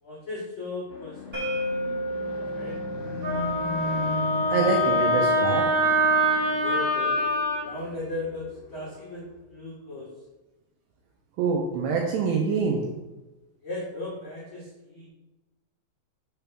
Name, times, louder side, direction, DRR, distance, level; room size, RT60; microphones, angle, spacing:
voice 1, 0.0-2.8 6.6-7.2 7.6-10.1 13.6-15.1, left 2 dB, 85° left, -9 dB, 1.1 m, -37 dB
sound 1, 0.9-9.4, left 3 dB, 60° left, 2.9 m, -38 dB
sound 2, 1.3-7.1, equal, 35° right, 1.1 m, -35 dB
Wind instrument woodwind instrument, 3.2-7.6, equal, 60° right, 2.0 m, -24 dB
voice 2, 4.5-5.7 11.4-12.8, right 5 dB, 80° right, 0 dB, 2.4 m, -25 dB
6.7 x 3.4 x 6.0 m, 1.0 s
omnidirectional pair, 5.4 m